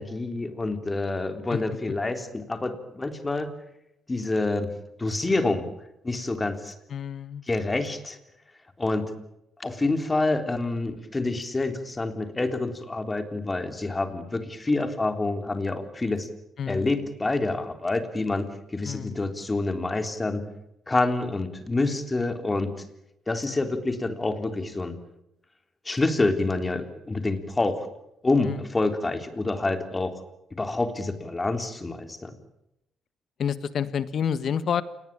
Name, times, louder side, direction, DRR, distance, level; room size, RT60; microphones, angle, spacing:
voice 1, 0.0-3.5 4.1-4.7 5.0-5.7 6.0-6.7 7.5-8.2 8.8-9.1 9.6-16.3 16.7-20.4 20.9-22.8 23.3-25.0 25.9-27.8 28.2-30.2 30.6-32.3, left 2 dB, 20° left, 8 dB, 3.7 m, -27 dB
voice 2, 6.9-7.4 16.6-16.9 18.8-19.2 28.4-28.7 33.4-34.8, left 8 dB, 60° left, 14 dB, 1.6 m, -29 dB
28.5 x 20.0 x 8.9 m, 0.83 s
cardioid pair, 90°, 0 cm